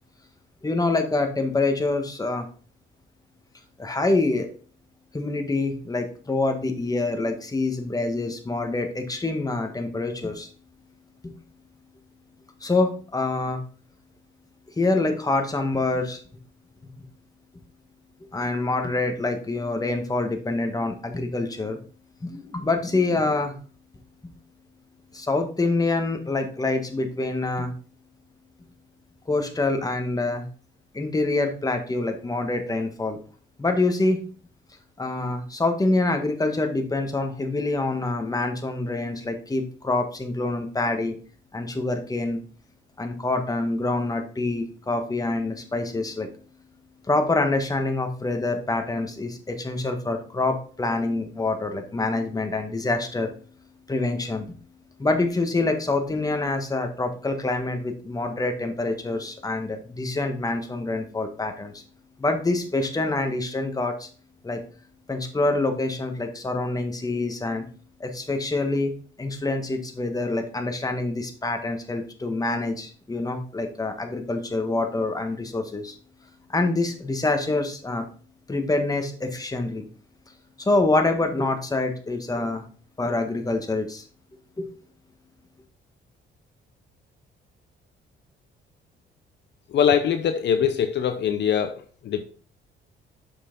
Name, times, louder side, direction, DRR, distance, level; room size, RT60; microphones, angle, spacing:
voice 1, 0.6-2.5 3.8-4.5 5.1-10.5 11.2-11.3 12.6-13.6 14.8-16.2 18.3-21.8 22.2-23.5 25.1-27.7 29.3-30.5 30.9-33.2 33.6-34.2 35.0-41.2 41.5-42.4 43.0-46.3 47.1-53.3 53.9-54.5 55.0-61.8 62.2-64.1 64.4-64.6 65.1-67.7 68.0-68.9 69.2-75.9 76.5-78.0 78.5-79.9 80.6-82.6 83.0-84.0 84.6-84.7, left 2 dB, 20° left, 1.4 m, -26 dB
voice 2, 89.7-92.2, left 8 dB, 65° left, 0.7 m, -23 dB
6.6 x 5.6 x 3.8 m
cardioid pair, 90°, 20 cm